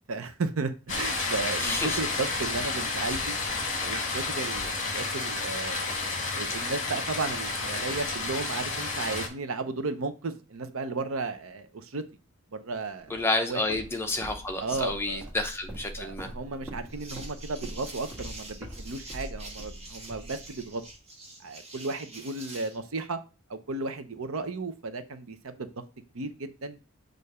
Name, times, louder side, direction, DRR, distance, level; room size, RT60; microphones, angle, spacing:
voice 1, 0.1-3.4 3.8-12.0 12.5-13.6 14.6-15.3 16.0-20.8 21.4-23.2 23.5-25.8 26.1-26.8, right 3 dB, 70° right, 0.7 m, -34 dB
sound 1, 0.9-9.3, left 3 dB, 35° left, 1.3 m, -31 dB
voice 2, 1.6-2.0 13.1-16.3, left 2 dB, 10° left, 0.7 m, -30 dB
Walk footsteps, 13.1-21.0, equal, 10° right, 1.4 m, -43 dB
sound 2, 16.9-22.8, right 2 dB, 30° right, 1.2 m, -46 dB
6.6 x 2.6 x 5.4 m
head